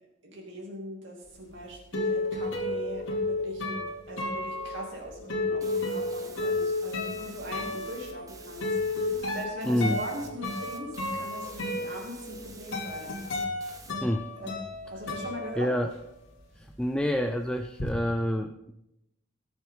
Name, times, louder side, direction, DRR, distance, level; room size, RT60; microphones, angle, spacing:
voice 1, 0.2-3.8 4.1-8.7 8.9-13.2 14.4-14.5 14.9-15.7, right 1 dB, 60° right, -3 dB, 2.7 m, -41 dB
sound 1, 1.4-16.2 16.4-17.9, left 2 dB, 60° left, 2.7 m, -33 dB
sound 2, 5.6-13.9, right 4 dB, 15° right, 1.0 m, -50 dB
voice 2, 9.7-10.0 14.0-14.3 15.6-15.9 16.6-18.7, equal, 5° left, 5 dB, 0.4 m, -28 dB
20.0 x 7.0 x 3.8 m, 0.86 s
head